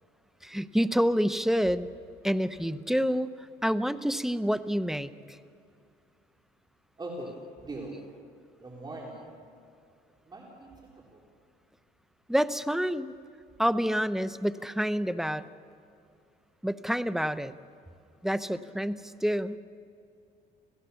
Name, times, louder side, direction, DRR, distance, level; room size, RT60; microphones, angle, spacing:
voice 1, 0.4-1.9 2.2-3.3 3.6-5.4 12.3-13.1 13.6-15.5 16.6-17.5 18.2-19.6, equal, ahead, 12 dB, 0.8 m, -28 dB
voice 2, 7.0-8.0 8.6-9.3 10.3-11.2, right 1 dB, 25° right, -2 dB, 3.9 m, -41 dB
28.5 x 17.0 x 7.1 m, 2.5 s
cardioid pair, 110°, 17 cm